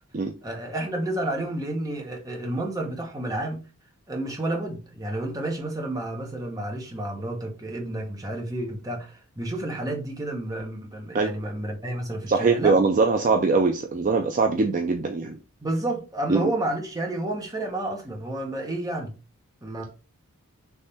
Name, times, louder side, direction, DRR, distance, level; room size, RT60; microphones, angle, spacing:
voice 1, 0.4-3.6 4.1-12.8 15.6-19.1 19.6-19.8, right 1 dB, 15° right, 0.9 m, -30 dB
voice 2, 12.3-15.4 16.3-16.5, right 4 dB, 35° right, 0.4 m, -22 dB
3.5 x 3.2 x 4.1 m
head